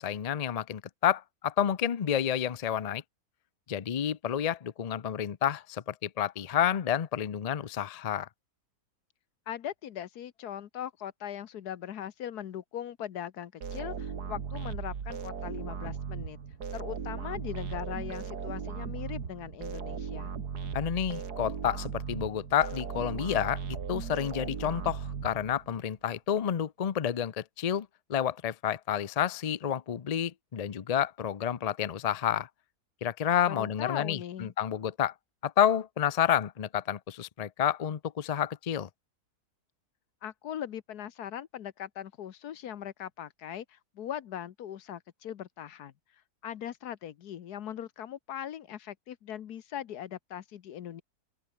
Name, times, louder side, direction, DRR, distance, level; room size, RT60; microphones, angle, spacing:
voice 1, 0.0-3.0 3.7-8.3 20.7-23.6 23.9-32.5 33.0-35.1 35.4-38.9, left 9 dB, 60° left, 0.4 m, -29 dB
voice 2, 9.5-16.4 16.7-20.3 33.5-34.5 40.2-45.9 46.4-51.0, left 10 dB, 80° left, 1.5 m, -40 dB
sound 1, 13.6-25.8, right 6 dB, 85° right, 2.5 m, -37 dB
open air
omnidirectional pair, 1.7 m